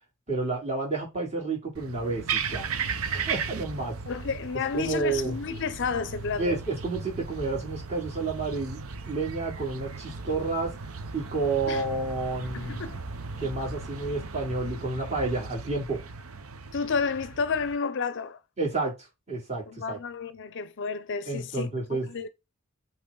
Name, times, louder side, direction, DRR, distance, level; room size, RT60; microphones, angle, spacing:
voice 1, 0.3-2.7 3.1-3.9 4.7-5.4 6.4-10.7 11.1-12.8 13.4-16.0 18.6-18.9 19.3-20.0 21.3-22.1, right 3 dB, 30° right, 3.1 m, -30 dB
sound 1, 1.7-17.8, right 5 dB, 75° right, 0.7 m, -36 dB
voice 2, 4.1-6.6 11.7-11.8 12.5-13.0 16.7-18.4 19.7-22.3, left 5 dB, 55° left, 0.5 m, -31 dB
8.4 x 3.0 x 3.8 m
head